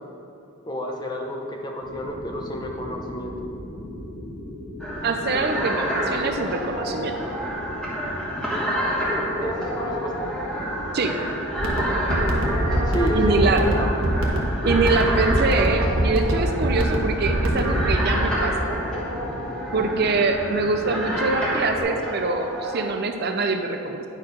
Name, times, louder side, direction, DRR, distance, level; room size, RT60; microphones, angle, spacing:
voice 1, 0.6-3.3 9.4-10.3 12.9-14.0, equal, 20° left, 1 dB, 0.6 m, -30 dB
sound 1, 1.8-21.8, equal, 75° left, 1.3 m, -37 dB
sound 2, 4.8-22.8, equal, 5° left, 1.3 m, -29 dB
voice 2, 5.0-7.2 10.9-11.1 13.1-13.6 14.6-18.5 19.7-24.0, right 3 dB, 45° right, 5 dB, 0.5 m, -24 dB
sound 3, 11.6-18.0, right 1 dB, 70° right, 1.1 m, -24 dB
9.6 x 4.4 x 5.3 m, 2.7 s
head